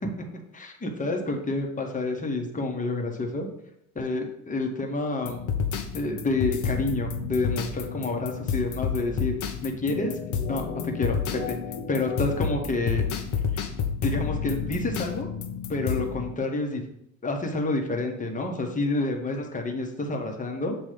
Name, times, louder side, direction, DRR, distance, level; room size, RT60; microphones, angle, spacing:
voice 1, 0.0-3.5 3.9-5.5 5.9-9.3 9.6-10.1 10.5-11.2 11.5-11.6 11.9-13.1 14.0-15.3 15.7-16.8 17.2-20.8, left 2 dB, 20° left, 2 dB, 1.2 m, -29 dB
sound 1, 5.2-16.3, left 6 dB, 45° left, 0.8 m, -30 dB
7.4 x 2.7 x 5.0 m, 0.76 s
hypercardioid pair, 70°, 42 cm